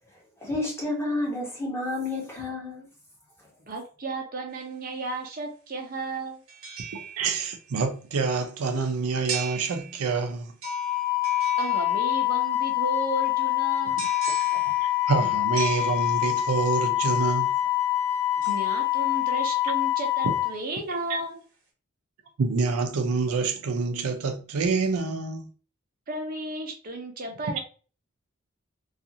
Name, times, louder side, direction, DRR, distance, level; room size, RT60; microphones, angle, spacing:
voice 1, 0.4-2.9, left 2 dB, 10° left, 0.8 m, -30 dB
voice 2, 3.7-6.4 11.6-14.0 18.5-21.4 26.1-27.6, right 2 dB, 40° right, 0.6 m, -34 dB
sound 1, 4.5-4.6 6.5-7.7 9.3-10.2 10.6-12.3 14.0-16.5 18.4-19.6 20.1-20.2, right 5 dB, 70° right, 1.0 m, -39 dB
voice 3, 6.9-10.5 14.5-17.5 20.2-20.3 21.1-21.2 22.4-25.5, right 4 dB, 85° right, 0.5 m, -27 dB
Wind instrument woodwind instrument, 10.6-20.5, left 14 dB, 40° left, 0.7 m, -25 dB
2.4 x 2.4 x 2.8 m
head